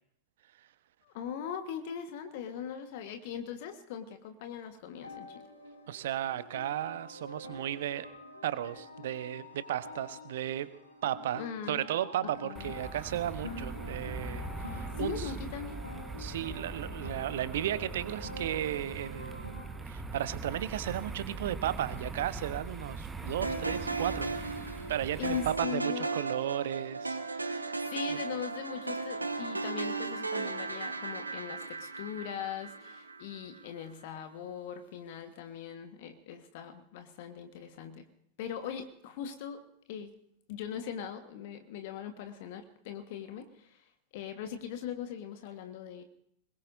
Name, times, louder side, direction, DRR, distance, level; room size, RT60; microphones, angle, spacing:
voice 1, 1.0-5.5 11.4-11.9 12.4-12.7 15.0-15.8 25.2-26.2 27.8-38.1 38.4-39.6 39.9-40.1 40.5-43.8 44.1-46.0, left 8 dB, 50° left, 7 dB, 1.4 m, -40 dB
sound 1, 4.9-19.7, left 1 dB, 85° left, 2.5 m, -47 dB
voice 2, 5.9-8.1 8.4-10.7 11.0-15.3 16.2-19.5 19.9-24.3 24.9-28.2, right 12 dB, 55° right, 14 dB, 1.0 m, -35 dB
sound 2, 12.5-25.6, right 3 dB, 10° right, 1.3 m, -41 dB
sound 3, 23.4-33.7, right 3 dB, 80° right, 1.3 m, -36 dB
24.0 x 21.5 x 2.7 m, 0.72 s
figure-of-eight pair, 90°, 0 cm